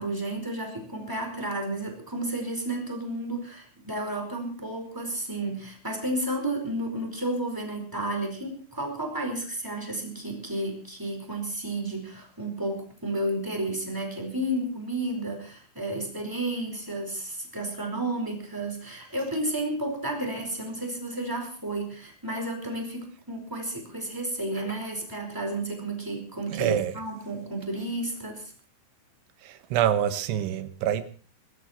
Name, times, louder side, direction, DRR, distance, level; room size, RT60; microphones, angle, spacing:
voice 1, 0.0-28.4, right 1 dB, 5° right, 3 dB, 3.9 m, -32 dB
voice 2, 26.5-27.0 29.4-31.0, right 10 dB, 75° right, 11 dB, 3.5 m, -26 dB
23.5 x 13.0 x 4.4 m, 0.40 s
omnidirectional pair, 5.6 m